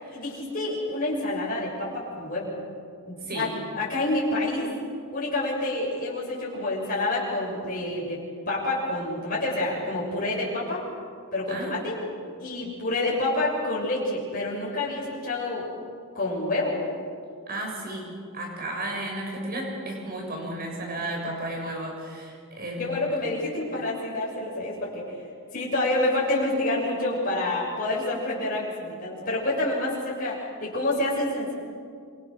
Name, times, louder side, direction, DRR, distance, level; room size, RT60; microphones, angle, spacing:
voice 1, 0.1-2.5 3.0-3.5 3.7-4.7 5.1-10.8 11.3-12.0 12.4-15.7 16.1-16.8 22.8-25.0 25.5-31.5, left 2 dB, 40° left, -5 dB, 7.0 m, -28 dB
voice 2, 3.2-3.6 11.5-11.7 17.5-23.1, right 1 dB, 40° right, 0 dB, 7.1 m, -33 dB
27.0 x 26.5 x 6.6 m, 2.3 s
head